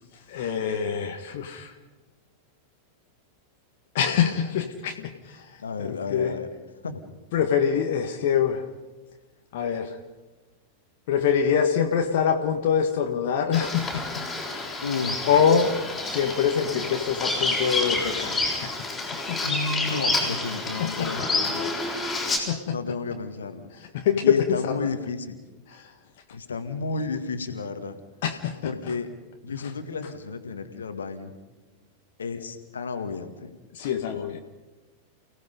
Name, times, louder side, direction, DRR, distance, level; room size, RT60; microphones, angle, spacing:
voice 1, 0.3-1.7 3.9-5.4 5.8-6.3 7.3-8.6 9.5-9.9 11.1-14.0 14.6-14.8 15.2-15.7 16.0-18.7 19.3-19.4 20.8-21.1 22.1-22.8 23.9-24.7 28.2-28.7 33.7-34.4, left 7 dB, 50° left, 4 dB, 1.6 m, -24 dB
voice 2, 5.6-6.5 6.8-7.0 14.8-15.2 19.4-21.8 22.7-23.7 24.2-25.4 26.3-28.0 28.6-29.1 29.4-31.3 32.2-33.5, left 4 dB, 70° left, 8 dB, 1.9 m, -32 dB
Bird vocalization bird call bird song, 13.5-22.4, left 2 dB, 10° left, 6.5 m, -29 dB
29.5 x 17.5 x 5.4 m, 1.2 s
figure-of-eight pair, 90°, 0 cm